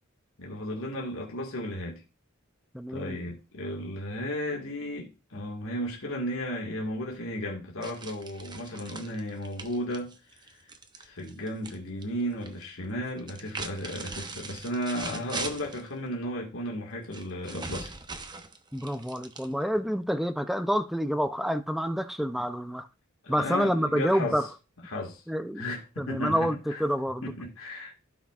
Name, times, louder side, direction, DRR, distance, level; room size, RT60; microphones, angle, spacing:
voice 1, 0.4-2.0 2.9-10.6 11.0-17.9 23.2-24.4 24.9-25.2 25.6-26.8 27.2-27.9, equal, 80° left, 1.9 m, -34 dB
voice 2, 2.7-3.2 18.7-22.9 23.3-24.5 25.3-25.6 26.0-27.3, equal, ahead, 0.5 m, -28 dB
sound 1, 7.8-11.8 12.0-12.6 13.2-15.9 17.1-19.8, right 3 dB, 20° right, 0.9 m, -40 dB
16.0 x 5.9 x 2.4 m
head